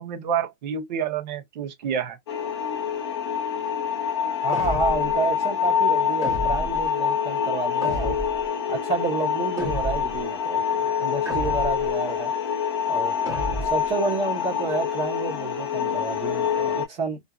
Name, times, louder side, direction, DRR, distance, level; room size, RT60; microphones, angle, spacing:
voice 1, 0.0-2.2, right 7 dB, 40° right, 0.9 m, -28 dB
sound 1, 2.3-16.9, left 8 dB, 25° left, 0.4 m, -26 dB
voice 2, 4.4-8.2 8.7-12.3 12.9-13.3 13.7-17.2, right 3 dB, 25° right, 1.2 m, -29 dB
sound 2, 4.5-5.2 6.2-6.9 7.8-8.4 9.6-10.2 11.2-11.9 13.2-13.9, right 1 dB, 10° right, 0.9 m, -31 dB
2.6 x 2.6 x 2.3 m
hypercardioid pair, 170°, 34 cm